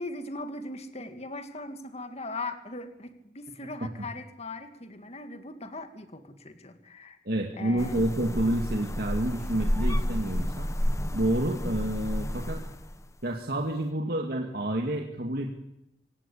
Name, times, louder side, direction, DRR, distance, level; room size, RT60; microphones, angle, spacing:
voice 1, 0.0-7.2 7.6-8.0, left 2 dB, 40° left, 8 dB, 2.1 m, -39 dB
voice 2, 7.3-10.7 11.1-12.6 13.2-15.6, right 1 dB, 60° right, 1 dB, 2.3 m, -29 dB
sound 1, 7.8-13.1, equal, 20° left, 1.1 m, -30 dB
25.0 x 17.0 x 8.7 m, 0.85 s
head